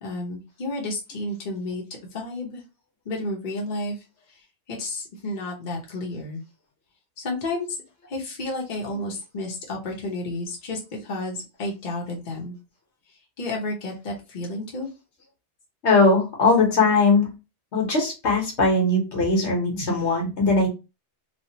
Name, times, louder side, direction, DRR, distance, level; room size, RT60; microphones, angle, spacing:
voice 1, 0.0-1.8 2.1-2.6 3.1-4.0 4.7-6.4 7.2-7.8 8.1-12.6 13.4-14.9, left 2 dB, 45° left, -1 dB, 0.9 m, -31 dB
voice 2, 15.8-17.3 17.7-20.7, left 3 dB, 75° left, 0 dB, 1.4 m, -20 dB
3.2 x 2.3 x 2.7 m, 0.28 s
omnidirectional pair, 1.2 m